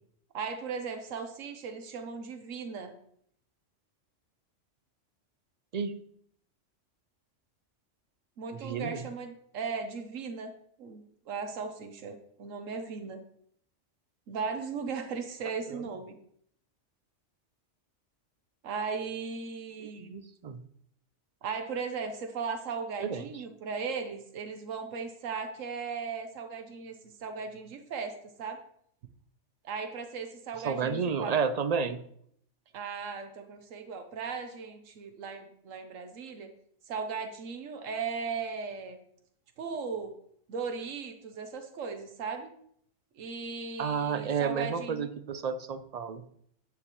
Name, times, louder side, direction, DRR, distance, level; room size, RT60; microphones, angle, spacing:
voice 1, 0.3-2.9 8.4-10.5 10.8-13.2 14.3-16.2 18.6-20.2 21.4-28.6 29.6-31.3 32.7-36.5 36.9-39.0 39.6-40.1 40.5-42.5 43.1-45.1, right 5 dB, 85° right, 6 dB, 1.2 m, -37 dB
voice 2, 8.5-9.0 15.7-15.8 19.8-20.6 23.0-23.2 30.6-32.0 43.8-46.2, right 6 dB, 55° right, 11 dB, 0.4 m, -31 dB
9.7 x 9.3 x 3.0 m, 0.67 s
omnidirectional pair, 1.3 m